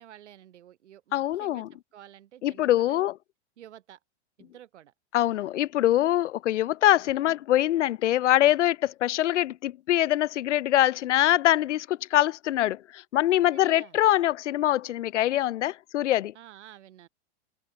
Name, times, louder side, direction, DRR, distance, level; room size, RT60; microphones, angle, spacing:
voice 1, 0.0-3.1 3.6-4.0 4.4-4.9 13.3-14.0 16.3-17.1, right 11 dB, 80° right, 5.9 m, -51 dB
voice 2, 1.1-1.7 2.4-3.1 5.1-16.3, left 13 dB, 90° left, 0.7 m, -24 dB
hypercardioid pair, 140°, 34 cm